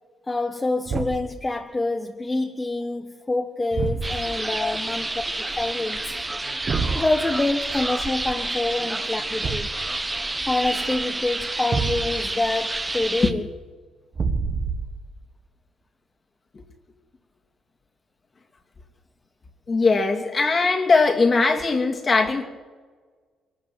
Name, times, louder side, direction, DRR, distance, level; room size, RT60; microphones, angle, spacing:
voice 1, 0.3-5.1 5.4-6.1 6.9-9.7 10.5-13.5, left 2 dB, 20° left, 1.4 m, -26 dB
Thump thud, 0.9-1.4 3.7-4.4 6.7-7.1 9.4-9.9 11.7-12.4 14.1-15.1, right 5 dB, 45° right, 1.6 m, -27 dB
sound 1, 4.0-13.3, right 2 dB, 15° right, 1.5 m, -29 dB
voice 2, 19.7-22.4, left 3 dB, 35° left, 2.8 m, -20 dB
23.5 x 13.5 x 9.4 m
cardioid pair, 90°, 0 cm